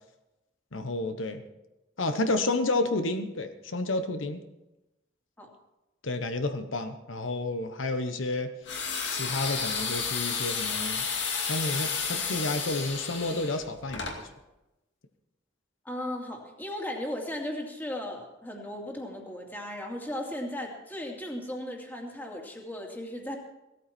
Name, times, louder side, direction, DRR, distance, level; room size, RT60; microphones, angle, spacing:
voice 1, 0.7-1.4 2.0-4.4 6.0-8.5 9.1-11.0 11.5-14.1, left 2 dB, 85° left, 8 dB, 1.1 m, -30 dB
sound 1, 8.7-14.2, left 5 dB, 65° left, 2.5 m, -31 dB
voice 2, 15.8-23.4, left 1 dB, 10° left, 0 dB, 2.4 m, -36 dB
17.0 x 13.5 x 4.4 m, 0.96 s
head